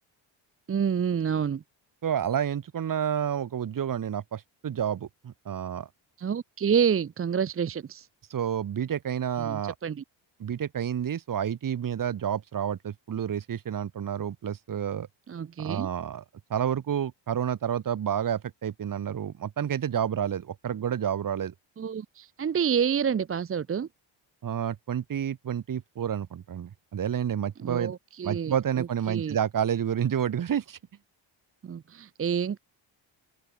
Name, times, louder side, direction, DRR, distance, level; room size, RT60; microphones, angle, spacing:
voice 1, 0.7-1.6 6.2-8.1 9.4-10.0 15.3-15.9 21.8-23.9 27.6-29.4 31.6-32.6, right 7 dB, 30° right, 0.8 m, -28 dB
voice 2, 2.0-5.9 8.3-9.7 10.4-15.1 15.6-16.2 16.5-21.5 24.4-27.9 28.2-30.8, right 9 dB, 45° right, 1.7 m, -29 dB
open air
cardioid pair, 110°, 45 cm